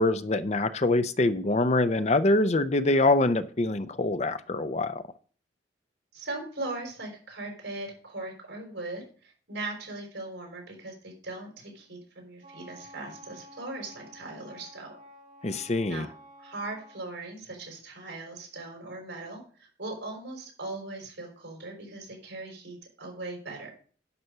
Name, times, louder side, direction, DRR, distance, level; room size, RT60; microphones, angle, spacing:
voice 1, 0.0-5.0 15.4-16.1, left 2 dB, 35° left, 12 dB, 0.6 m, -24 dB
voice 2, 6.1-15.0 15.9-16.1 16.4-23.7, right 2 dB, 70° right, 1 dB, 5.7 m, -39 dB
Wind instrument woodwind instrument, 12.4-17.0, equal, 40° right, 4.7 m, -51 dB
11.0 x 5.9 x 6.6 m, 0.43 s
head